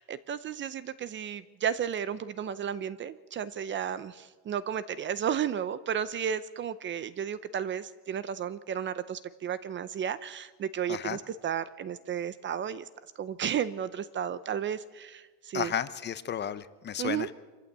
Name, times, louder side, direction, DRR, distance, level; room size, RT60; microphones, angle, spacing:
voice 1, 0.0-12.9 13.2-15.7 17.0-17.3, right 8 dB, 30° right, 15 dB, 0.6 m, -33 dB
voice 2, 15.5-17.3, left 8 dB, 30° left, 14 dB, 0.7 m, -33 dB
25.0 x 14.5 x 8.1 m, 1.3 s
cardioid pair, 155°, 37 cm